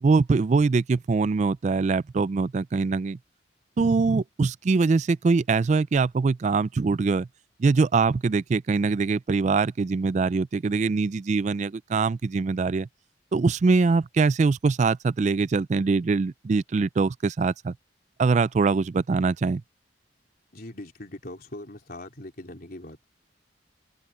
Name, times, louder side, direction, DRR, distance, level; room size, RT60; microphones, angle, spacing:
voice 1, 0.0-3.2 3.8-7.3 7.6-12.9 13.3-17.7 18.2-19.6, right 4 dB, 40° right, 0.3 m, -23 dB
voice 2, 20.5-23.0, left 1 dB, 55° left, 3.7 m, -41 dB
head